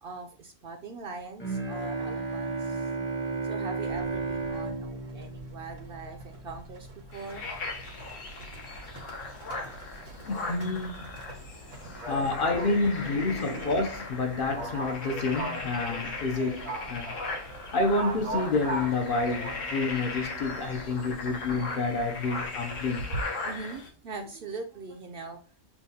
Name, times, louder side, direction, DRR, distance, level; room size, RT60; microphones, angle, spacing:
voice 1, 0.0-2.9 3.4-7.5 11.8-12.1 13.0-13.7 20.8-21.1 23.4-25.4, right 4 dB, 60° right, 0.6 m, -42 dB
Bowed string instrument, 1.4-6.5, right 3 dB, 10° left, 0.7 m, -33 dB
Livestock farm animals working animals, 3.9-23.2, right 2 dB, 90° right, 1.6 m, -41 dB
sound 1, 7.1-23.9, left 3 dB, 90° left, 1.3 m, -38 dB
voice 2, 10.2-11.1 12.1-17.1 17.7-23.1, left 3 dB, 50° left, 0.8 m, -29 dB
7.0 x 2.3 x 2.7 m
omnidirectional pair, 1.3 m